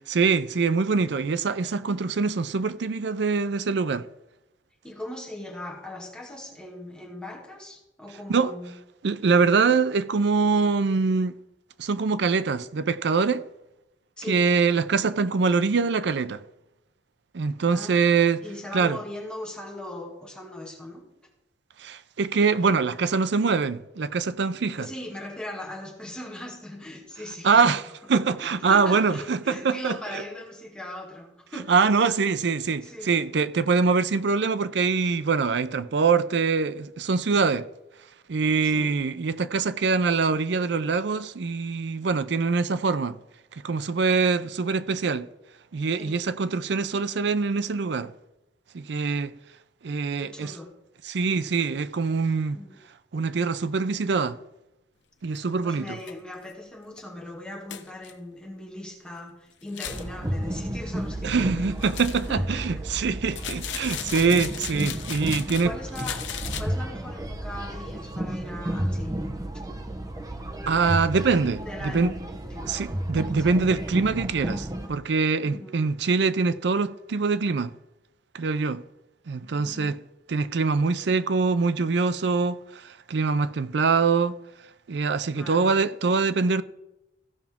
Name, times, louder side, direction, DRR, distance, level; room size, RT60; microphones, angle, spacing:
voice 1, 0.1-4.0 8.3-8.5 9.0-11.3 11.8-13.4 14.3-16.4 17.3-18.4 18.7-19.0 21.8-24.9 27.4-27.8 28.1-30.2 31.7-37.7 38.3-43.2 43.6-45.3 45.7-48.1 48.7-49.3 49.8-50.5 51.1-52.6 53.1-54.4 55.2-56.0 61.2-65.7 70.7-72.1 72.7-77.7 78.3-78.8 79.3-80.0 80.3-82.6 82.8-84.3 84.9-86.6, right 4 dB, 70° right, 0.5 m, -24 dB
voice 2, 4.8-8.7 14.2-14.5 17.7-21.1 24.8-27.8 28.4-31.8 32.8-33.3 38.6-38.9 45.9-46.2 50.1-50.7 52.5-52.8 55.6-61.7 62.3-62.9 63.4-63.5 63.8-64.5 65.4-69.2 71.6-72.2 72.4-72.7 73.4-73.5 75.4-75.8 79.6-80.0 85.3-85.7, left 1 dB, 5° left, 1.8 m, -39 dB
sound 1, 55.3-55.4 56.0-56.1 56.5-56.6 57.0-57.1 57.7-58.1 59.6-60.1 61.8-62.3 63.3-65.7 65.9-66.6, left 9 dB, 90° left, 0.8 m, -36 dB
sound 2, 59.8-74.9, right 1 dB, 20° right, 0.7 m, -32 dB
15.5 x 5.8 x 3.6 m
head